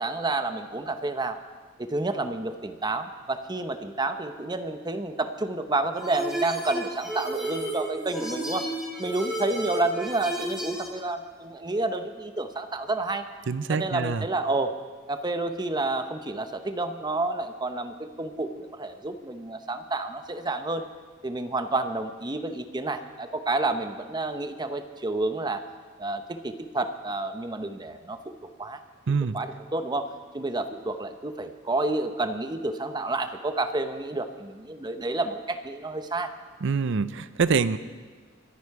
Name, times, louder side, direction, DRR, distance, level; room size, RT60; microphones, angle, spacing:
voice 1, 0.0-1.4 1.8-8.7 9.0-13.3 13.7-14.8 15.1-20.8 21.2-25.6 26.0-28.3 28.6-28.8 29.3-36.3, right 2 dB, 20° right, 8 dB, 0.8 m, -30 dB
sound 1, 6.0-10.9, right 1 dB, 5° right, 4.9 m, -32 dB
voice 2, 13.5-14.3 29.1-29.4 36.6-37.8, right 5 dB, 60° right, 14 dB, 0.5 m, -25 dB
25.0 x 10.0 x 4.7 m, 1.4 s
head